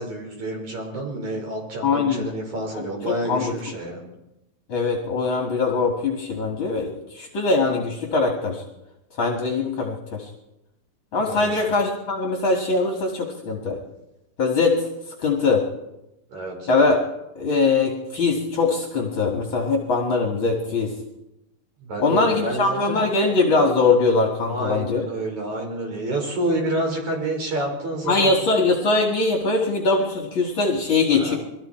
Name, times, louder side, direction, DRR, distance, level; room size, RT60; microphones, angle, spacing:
voice 1, 0.0-4.0 11.3-11.8 16.3-16.7 21.8-23.0 24.5-28.4 31.1-31.4, right 1 dB, 55° right, 1 dB, 6.5 m, -29 dB
voice 2, 1.8-2.3 2.8-3.5 4.7-8.6 9.2-10.3 11.1-13.8 14.4-14.9 15.2-15.6 16.7-17.0 17.4-20.9 22.0-25.0 28.0-31.3, left 3 dB, 40° left, 1 dB, 2.5 m, -22 dB
29.5 x 22.0 x 4.5 m, 0.92 s
omnidirectional pair, 4.0 m